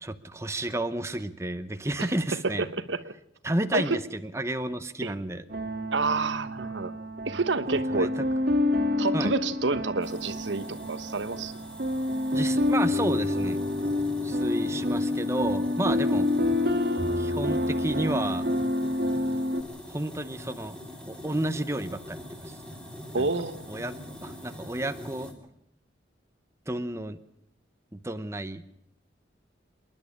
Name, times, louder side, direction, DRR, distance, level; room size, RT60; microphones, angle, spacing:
voice 1, 0.0-2.7 3.4-5.4 7.2-7.4 7.9-8.1 9.1-9.3 12.3-13.6 14.2-16.3 17.2-18.5 19.9-20.8 21.1-22.6 23.2-23.3 23.7-25.3 26.7-27.2 27.9-28.6, right 1 dB, 15° right, 9 dB, 0.8 m, -31 dB
voice 2, 2.6-3.1 3.7-4.0 5.0-5.1 5.9-6.9 7.3-8.1 9.0-11.5 23.1-23.7, right 3 dB, 75° right, 12 dB, 1.1 m, -29 dB
sound 1, 5.5-19.6, left 1 dB, 55° right, 2.0 m, -28 dB
sound 2, 10.0-25.3, left 1 dB, 5° left, 2.9 m, -43 dB
28.0 x 11.0 x 8.6 m, 0.77 s
head